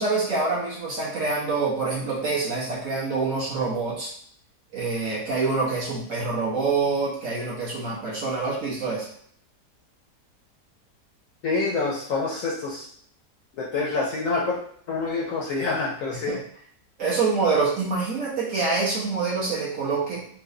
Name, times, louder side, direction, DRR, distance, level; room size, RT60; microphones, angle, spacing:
voice 1, 0.0-4.1 4.7-9.1 16.3-16.4 17.0-20.3, right 4 dB, 50° right, -6 dB, 1.5 m, -26 dB
voice 2, 11.4-12.9 13.6-14.6 14.9-16.4, left 3 dB, 65° left, -3 dB, 0.9 m, -26 dB
4.4 x 2.3 x 2.7 m, 0.62 s
omnidirectional pair, 1.8 m